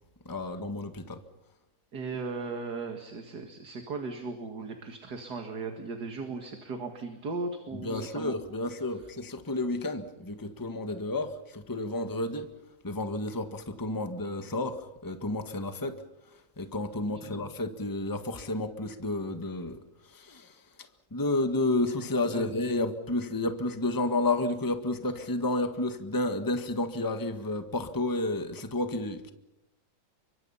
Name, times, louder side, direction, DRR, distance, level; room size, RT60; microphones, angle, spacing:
voice 1, 0.2-1.2 7.8-12.5 12.8-16.0 16.6-19.8 20.1-20.5 21.1-29.3, left 2 dB, 10° left, 7 dB, 1.5 m, -31 dB
voice 2, 1.9-8.3 9.0-9.1 17.0-17.4 22.3-22.5, right 3 dB, 70° right, 5 dB, 2.6 m, -37 dB
29.5 x 24.5 x 5.7 m, 0.89 s
omnidirectional pair, 1.8 m